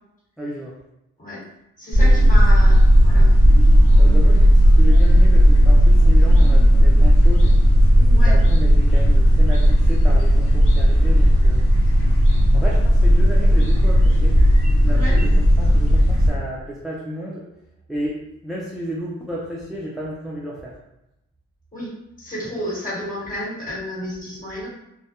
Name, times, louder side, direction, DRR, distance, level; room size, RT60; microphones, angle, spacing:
voice 1, 0.4-0.7 2.0-2.3 4.0-7.6 8.2-11.6 12.5-14.4 14.8-17.4 17.9-20.8, equal, ahead, -5 dB, 0.4 m, -32 dB
voice 2, 1.8-3.3 8.1-8.4 14.9-15.2 21.7-21.9 22.2-24.7, equal, 25° left, -7 dB, 1.3 m, -31 dB
sound 1, 1.9-16.3, equal, 45° left, 0.9 m, -13 dB
2.1 x 2.0 x 2.8 m, 0.86 s
cardioid pair, 70°, 31 cm